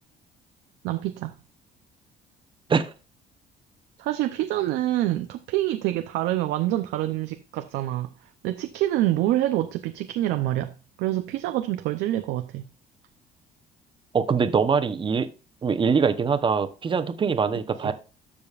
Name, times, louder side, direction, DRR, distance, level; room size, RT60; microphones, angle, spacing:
voice 1, 0.8-1.3 4.0-8.1 8.4-12.6 17.8-17.9, right 14 dB, 85° right, 0.6 m, -26 dB
voice 2, 14.1-15.3 15.6-17.9, right 5 dB, 30° right, 0.9 m, -23 dB
14.0 x 5.1 x 2.4 m
cardioid pair, 110°, 17 cm